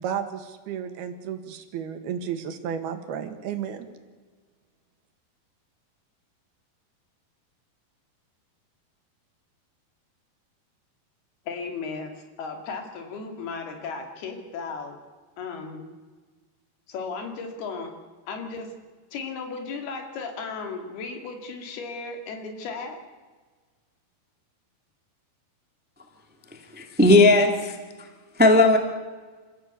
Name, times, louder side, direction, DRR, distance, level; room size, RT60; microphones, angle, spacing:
voice 1, 0.0-3.9, right 8 dB, 80° right, 7 dB, 3.6 m, -32 dB
voice 2, 11.5-15.0 15.4-15.9 16.9-17.9 18.3-18.7 19.1-23.0, left 4 dB, 80° left, 4 dB, 4.4 m, -35 dB
voice 3, 26.7-27.7 28.4-28.8, left 2 dB, 10° right, 4 dB, 0.5 m, -16 dB
27.5 x 14.5 x 8.3 m, 1.4 s
omnidirectional pair, 4.4 m